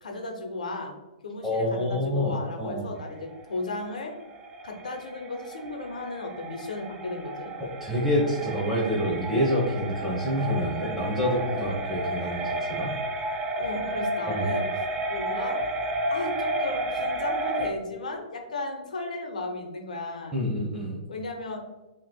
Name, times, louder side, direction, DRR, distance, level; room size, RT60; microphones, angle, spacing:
voice 1, 0.0-0.9 1.2-4.1 4.6-7.5 13.6-14.6 15.1-15.6 16.1-20.4 21.1-21.6, left 2 dB, 85° left, 3 dB, 0.8 m, -35 dB
voice 2, 1.4-2.8 7.6-12.9 14.3-14.5 20.3-21.0, equal, 5° right, -7 dB, 0.9 m, -27 dB
sound 1, 3.0-17.7, right 1 dB, 20° right, 0.5 m, -32 dB
5.8 x 2.8 x 2.2 m, 1.1 s
hypercardioid pair, 130°, 4 cm